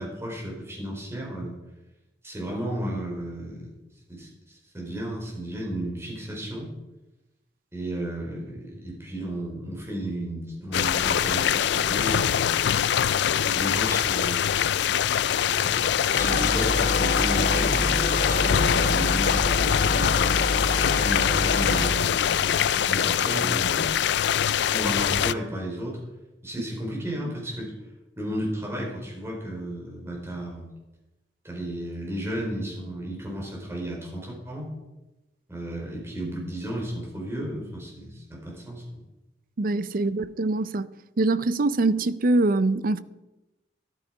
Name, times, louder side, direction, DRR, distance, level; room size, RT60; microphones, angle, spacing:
voice 1, 0.0-1.5 2.2-3.7 4.1-6.7 7.7-12.6 13.4-14.5 15.5-20.1 20.9-24.0 24.7-26.0 26.4-27.7 28.2-30.7 31.4-34.7 35.5-38.8, right 1 dB, 15° right, 4.5 m, -33 dB
sound 1, 10.7-25.3, left 9 dB, 70° left, 0.4 m, -24 dB
sound 2, 16.1-22.0, left 2 dB, 55° left, 1.0 m, -27 dB
voice 2, 39.6-40.9 41.2-43.0, right 2 dB, 55° right, 0.6 m, -23 dB
13.5 x 12.0 x 4.8 m
head